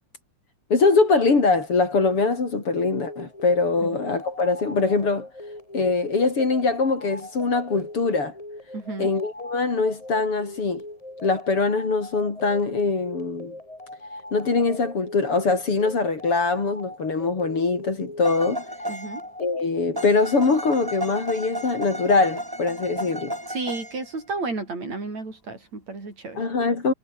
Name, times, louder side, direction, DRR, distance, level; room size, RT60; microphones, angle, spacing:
voice 1, 0.7-5.3 5.7-8.4 9.0-10.8 11.2-13.6 14.3-18.6 19.4-23.3 26.4-26.9, left 4 dB, 45° left, 4.6 m, -22 dB
sound 1, 3.0-19.6, left 1 dB, 10° left, 3.5 m, -41 dB
voice 2, 8.7-9.1 18.9-19.2 23.5-26.4, right 3 dB, 60° right, 8.2 m, -32 dB
sound 2, 18.2-19.3 20.0-24.1, equal, 5° right, 7.0 m, -33 dB
omnidirectional pair, 3.5 m